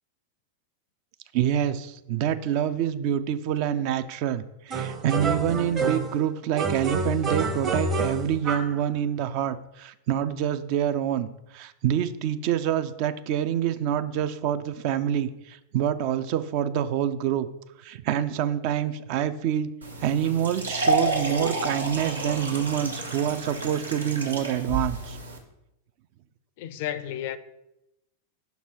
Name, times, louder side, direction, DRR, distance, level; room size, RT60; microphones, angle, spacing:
voice 1, 1.3-17.5 17.8-19.7 20.0-25.2, right 10 dB, 45° right, 0.3 m, -26 dB
sound 1, 4.7-6.2 6.6-8.8, right 3 dB, 25° right, 0.8 m, -28 dB
sound 2, 19.8-25.4, right 2 dB, 80° right, 0.9 m, -30 dB
voice 2, 26.6-27.4, left 11 dB, 50° left, 0.3 m, -32 dB
5.8 x 4.0 x 4.6 m
figure-of-eight pair, 90°, 0 cm